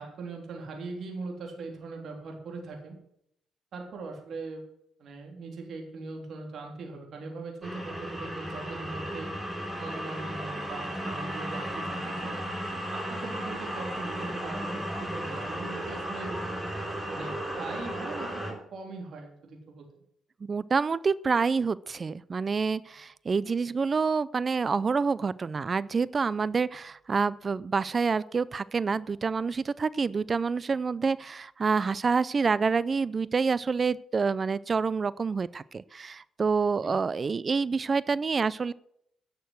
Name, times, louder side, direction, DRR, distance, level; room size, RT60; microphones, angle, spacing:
voice 1, 0.0-3.0 3.7-4.6 5.0-9.3 9.8-12.4 12.9-16.4 17.1-18.4 18.7-19.9 36.8-36.9, right 3 dB, 60° right, 1 dB, 3.4 m, -40 dB
sound 1, 7.6-18.5, equal, 15° right, 4.7 m, -35 dB
voice 2, 20.4-38.7, right 5 dB, 35° right, 19 dB, 0.4 m, -27 dB
11.5 x 6.7 x 8.0 m, 0.73 s
cardioid pair, 90°, 0 cm